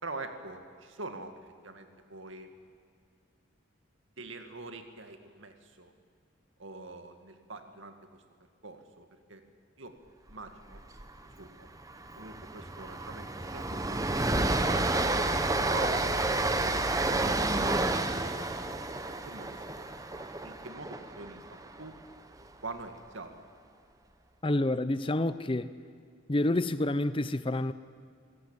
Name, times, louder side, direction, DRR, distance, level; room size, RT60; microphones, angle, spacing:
voice 1, 0.0-2.5 4.2-5.9 6.6-8.2 8.6-9.4 9.8-9.9 10.3-10.8 11.4-11.7 12.2-15.2 15.7-18.5 19.1-21.4 21.8-21.9 22.6-23.3, right 3 dB, 75° right, 6 dB, 2.2 m, -45 dB
Train, 10.7-11.0 11.3-11.5 11.8-22.0, right 2 dB, 15° right, 0.9 m, -30 dB
voice 2, 24.4-25.7 26.3-27.7, left 1 dB, 25° left, 14 dB, 0.6 m, -28 dB
25.0 x 17.5 x 9.0 m, 2.2 s
head